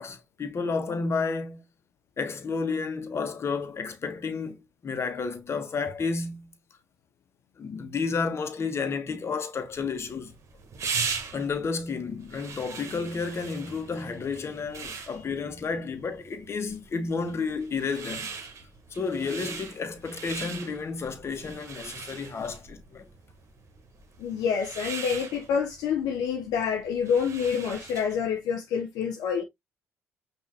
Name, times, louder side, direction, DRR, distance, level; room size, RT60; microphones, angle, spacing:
voice 1, 0.0-1.6 2.2-6.5 7.6-10.3 11.3-18.3 18.9-23.1, left 4 dB, 40° left, 1.2 m, -31 dB
sound 1, 9.7-28.3, right 5 dB, 50° right, 1.1 m, -39 dB
voice 2, 24.2-29.4, left 7 dB, 70° left, 0.6 m, -27 dB
5.5 x 2.8 x 3.1 m
hypercardioid pair, 50°, 7 cm